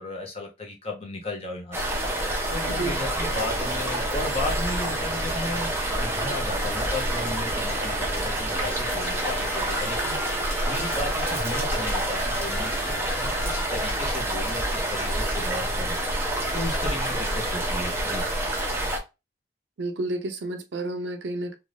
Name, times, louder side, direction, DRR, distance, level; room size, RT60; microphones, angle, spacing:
voice 1, 0.0-18.2, left 2 dB, 30° left, 0.7 m, -35 dB
sound 1, 1.7-19.0, right 1 dB, 15° right, 0.5 m, -27 dB
voice 2, 2.7-3.0 19.8-21.5, right 2 dB, 65° right, 0.5 m, -30 dB
sound 2, 3.1-8.8, right 2 dB, 10° left, 1.2 m, -40 dB
sound 3, 8.5-14.1, left 2 dB, 80° left, 0.7 m, -38 dB
2.5 x 2.2 x 3.1 m
head